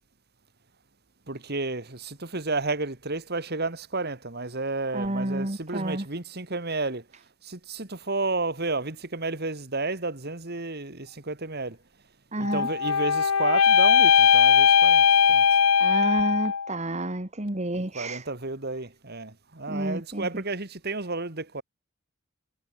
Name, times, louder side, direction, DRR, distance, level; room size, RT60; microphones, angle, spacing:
voice 1, 1.3-7.0 7.5-11.8 12.4-15.0 15.3-15.4 17.7-21.6, right 3 dB, 50° right, 2.7 m, -31 dB
voice 2, 4.9-6.0 12.3-12.7 15.8-18.2 19.7-20.3, right 1 dB, 30° right, 2.1 m, -30 dB
sound 1, 12.4-16.7, left 6 dB, 85° left, 1.0 m, -19 dB
head